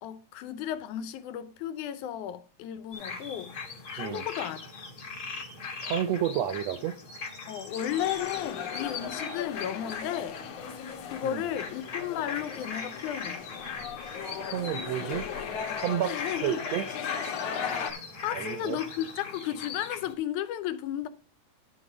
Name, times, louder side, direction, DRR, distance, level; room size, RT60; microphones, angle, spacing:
voice 1, 0.0-3.5 3.9-4.7 7.5-10.4 11.1-13.4 16.0-16.6 17.6-21.1, left 11 dB, 85° left, 2.2 m, -34 dB
sound 1, 2.9-20.1, left 4 dB, 35° left, 1.9 m, -40 dB
voice 2, 5.8-6.9 11.2-11.4 14.0-14.2 14.5-15.2 15.8-16.9 18.3-18.8, right 11 dB, 75° right, 1.6 m, -31 dB
sound 2, 7.7-17.9, left 7 dB, 65° left, 1.9 m, -38 dB
11.0 x 4.0 x 6.3 m
omnidirectional pair, 3.5 m